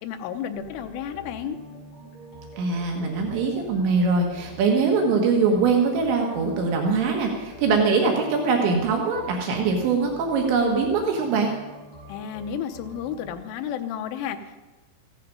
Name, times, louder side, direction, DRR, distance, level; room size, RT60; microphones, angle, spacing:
voice 1, 0.0-1.6 12.1-14.6, left 8 dB, 90° left, 7 dB, 3.5 m, -32 dB
sound 1, 0.5-13.3, equal, 35° left, 5.9 m, -45 dB
voice 2, 2.6-11.5, right 4 dB, 75° right, 2 dB, 3.6 m, -22 dB
15.0 x 14.5 x 5.4 m, 1.2 s
omnidirectional pair, 5.4 m